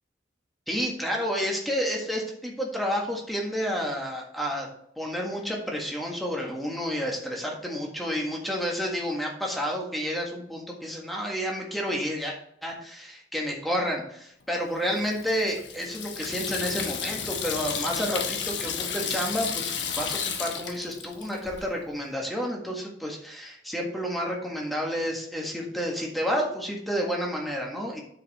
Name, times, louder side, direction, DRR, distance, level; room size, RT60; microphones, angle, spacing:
voice 1, 0.7-4.7 5.0-12.3 12.6-28.0, equal, ahead, -1 dB, 1.7 m, -30 dB
Water tap faucet / Sink (filling or washing), 14.9-21.7, left 7 dB, 85° left, 1.1 m, -32 dB
9.4 x 5.1 x 4.2 m, 0.70 s
head